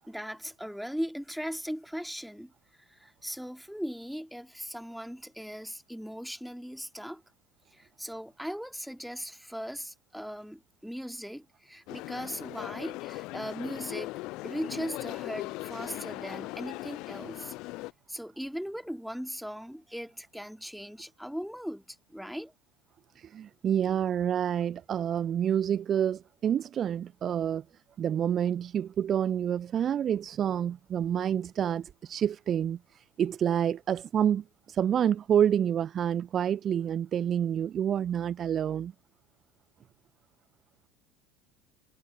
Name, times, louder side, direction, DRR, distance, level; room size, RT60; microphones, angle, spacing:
voice 1, 0.1-2.5 2.8-7.2 7.7-14.1 14.4-17.5 18.1-22.5, equal, ahead, 2.6 m, -38 dB
sound 1, 11.9-17.9, left 21 dB, 55° left, 0.4 m, -39 dB
voice 2, 23.2-27.6 28.0-38.9, right 9 dB, 35° right, 0.5 m, -28 dB
figure-of-eight pair, 70°, 0 cm